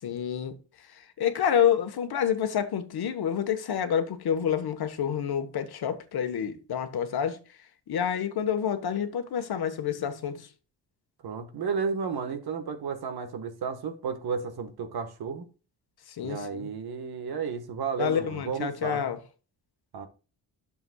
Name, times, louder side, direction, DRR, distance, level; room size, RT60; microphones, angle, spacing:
voice 1, 0.0-0.6 0.9-7.4 7.9-10.5 16.1-16.7 18.0-19.2, left 8 dB, 65° left, 1.2 m, -28 dB
voice 2, 11.2-15.5 16.2-19.0 19.9-20.1, right 5 dB, 65° right, 1.4 m, -33 dB
11.0 x 7.0 x 2.3 m
wide cardioid pair, 145°, 40 cm